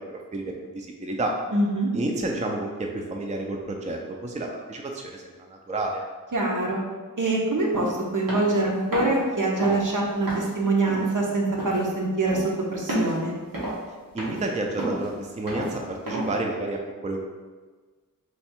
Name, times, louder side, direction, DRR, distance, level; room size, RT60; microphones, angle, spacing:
voice 1, 0.7-1.3 1.9-6.0 14.1-17.3, right 2 dB, 20° right, 1 dB, 0.4 m, -30 dB
voice 2, 1.5-1.9 6.3-6.8 7.2-13.3, right 2 dB, 65° right, -1 dB, 0.8 m, -24 dB
sound 1, 7.7-7.9 8.3-8.6 8.9-9.2 9.6-9.8 10.3-10.5 10.9-11.1 11.6-11.8 12.3-12.5 12.9-13.2 13.5-13.9 14.2-14.5 14.8-15.1 15.5-15.7 16.1-16.3, right 1 dB, 90° right, 1.1 m, -30 dB
3.3 x 2.3 x 4.3 m, 1.4 s
wide cardioid pair, 55°, 33 cm